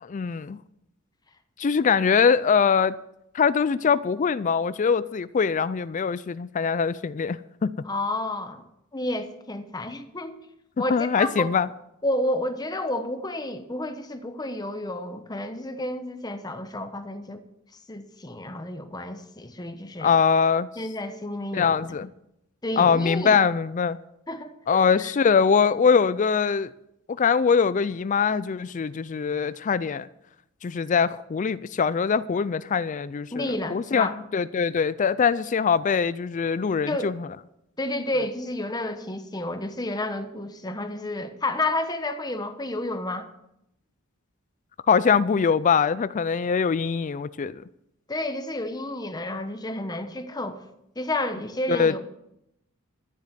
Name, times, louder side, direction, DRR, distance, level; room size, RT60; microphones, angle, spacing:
voice 1, 0.0-0.6 1.6-2.9 3.3-7.7 10.9-11.7 20.0-20.7 21.5-22.1 22.8-24.0 24.7-26.7 27.2-30.1 30.6-37.3 44.9-47.6 51.7-52.0, left 6 dB, 35° left, 0.4 m, -22 dB
voice 2, 7.8-8.6 8.9-10.3 10.8-11.5 12.0-17.4 17.9-20.1 20.8-22.0 22.6-23.4 24.3-25.1 33.3-34.1 36.9-37.1 37.8-43.3 48.1-50.6 51.0-52.0, left 1 dB, 20° left, 1.0 m, -30 dB
13.5 x 7.5 x 7.5 m
head